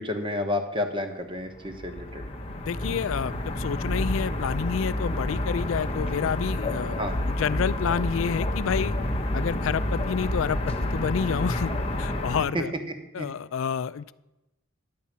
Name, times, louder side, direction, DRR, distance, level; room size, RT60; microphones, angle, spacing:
voice 1, 0.0-2.3 7.0-7.1 12.5-12.6 13.2-13.3, left 1 dB, 25° right, 6 dB, 1.1 m, -30 dB
sound 1, 1.5-12.4, left 1 dB, 30° left, 0.8 m, -29 dB
voice 2, 2.6-7.0 7.3-8.9 9.3-11.7 12.0-12.7 13.1-14.1, left 7 dB, 70° left, 17 dB, 0.4 m, -29 dB
10.5 x 5.6 x 8.6 m, 1.0 s
head